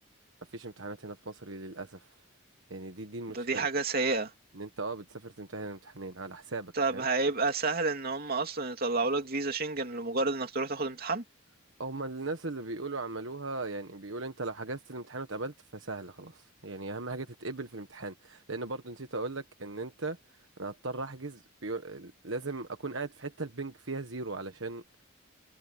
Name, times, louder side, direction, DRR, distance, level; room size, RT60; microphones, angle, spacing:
voice 1, 0.5-2.2 2.7-3.7 4.5-7.1 11.8-24.8, right 3 dB, 60° right, 1.4 m, -38 dB
voice 2, 3.3-4.3 6.8-11.2, right 3 dB, 45° right, 3.0 m, -30 dB
head